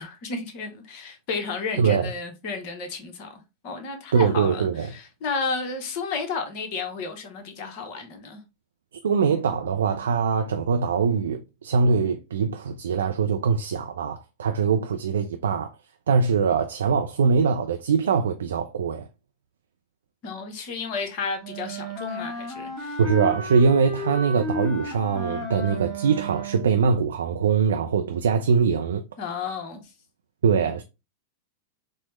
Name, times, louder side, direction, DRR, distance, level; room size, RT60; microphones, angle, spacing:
voice 1, 0.0-8.4 20.2-23.0 29.2-29.8 30.6-30.7, left 4 dB, 45° left, 0.9 m, -32 dB
voice 2, 1.8-2.1 4.1-4.9 9.0-15.7 16.1-19.1 23.0-29.0 30.4-30.8, right 5 dB, 65° right, 0.3 m, -22 dB
Wind instrument woodwind instrument, 21.4-26.8, left 1 dB, ahead, 1.5 m, -33 dB
4.3 x 2.1 x 3.0 m
figure-of-eight pair, 90°, 0 cm